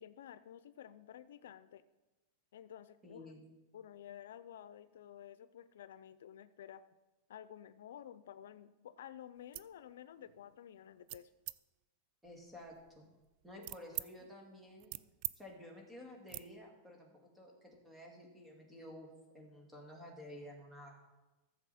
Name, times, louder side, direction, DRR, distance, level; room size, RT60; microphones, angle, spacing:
voice 1, 0.0-1.8 2.5-3.4 3.7-6.8 7.3-11.3 13.6-13.7, left 10 dB, 85° left, 14 dB, 0.5 m, -52 dB
voice 2, 3.0-3.5 12.2-13.1 13.4-14.9 15.4-19.1 19.3-20.9, left 1 dB, 5° right, -1 dB, 2.3 m, -52 dB
sound 1, 9.4-9.7 10.2-10.5 11.1-11.6 12.2-14.1 14.5-15.4 15.6-15.8 16.3-16.5, right 19 dB, 50° right, 0.3 m, -45 dB
14.5 x 7.2 x 4.2 m, 1.1 s
supercardioid pair, 145°, 0 cm